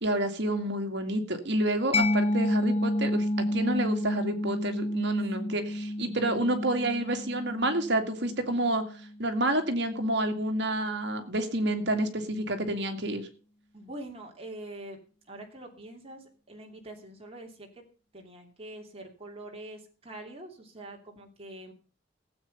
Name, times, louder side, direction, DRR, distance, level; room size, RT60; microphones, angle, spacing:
voice 1, 0.0-3.3 3.5-8.8 9.2-13.3, right 1 dB, 60° right, 6 dB, 2.3 m, -29 dB
Mallet percussion, 1.9-9.3, left 1 dB, 30° left, 1.2 m, -30 dB
voice 2, 5.4-5.8 13.7-15.0 15.2-17.8 18.1-21.7, right 1 dB, 30° right, 1 dB, 2.8 m, -44 dB
15.5 x 8.4 x 5.7 m, 0.39 s
head